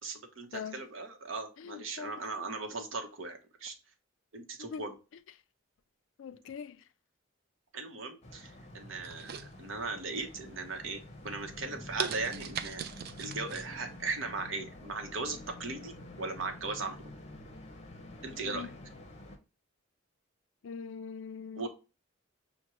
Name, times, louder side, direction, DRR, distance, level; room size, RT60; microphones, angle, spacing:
voice 1, 0.0-3.7 4.3-5.0 7.7-12.8 13.2-17.0 18.2-18.7 21.6-21.7, right 3 dB, 70° right, 0.8 m, -38 dB
voice 2, 0.5-0.8 1.6-2.2 4.6-4.9 6.2-6.8 18.4-18.7 20.6-21.7, left 6 dB, 70° left, 0.3 m, -42 dB
sound 1, 8.2-19.4, left 1 dB, 30° left, 0.6 m, -48 dB
sound 2, 9.0-10.0 10.5-10.9 11.4-11.5 12.0-13.7 14.0-14.1, right 8 dB, 50° right, 0.3 m, -39 dB
5.9 x 2.1 x 2.9 m
head